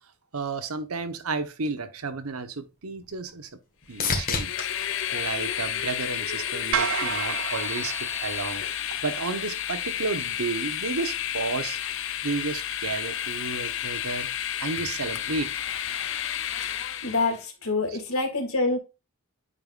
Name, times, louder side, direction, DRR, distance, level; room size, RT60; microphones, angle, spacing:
voice 1, 0.3-3.5 3.9-4.7 5.1-7.9 8.2-8.6 9.0-11.8 12.2-14.3 14.6-15.5, right 4 dB, 85° right, 1.0 m, -32 dB
sound 1, 2.3-6.5 7.0-7.6 15.4-15.5, left 4 dB, 40° left, 1.6 m, -34 dB
Train, 3.9-17.4, left 10 dB, 60° left, 0.7 m, -31 dB
sound 2, 6.7-9.1, right 7 dB, 60° right, 0.4 m, -31 dB
voice 2, 17.0-18.8, left 3 dB, 80° left, 2.3 m, -26 dB
8.6 x 5.5 x 2.4 m
head